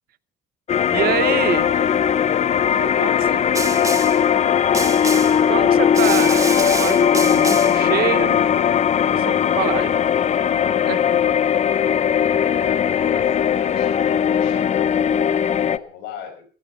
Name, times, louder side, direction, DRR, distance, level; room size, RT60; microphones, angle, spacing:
sound 1, 0.7-15.8, left 8 dB, 40° left, 0.7 m, -18 dB
voice 1, 0.9-1.9 3.0-3.1 5.5-8.7 9.1-10.0 10.8-11.2, right 13 dB, 65° right, 0.9 m, -26 dB
voice 2, 2.7-5.3 12.2-16.5, left 5 dB, 90° left, 5.5 m, -38 dB
Snare drum, 3.5-4.2 4.7-5.4 5.9-7.8, right 3 dB, 20° right, 2.4 m, -28 dB
20.0 x 15.0 x 4.4 m
cardioid pair, 110°, 17 cm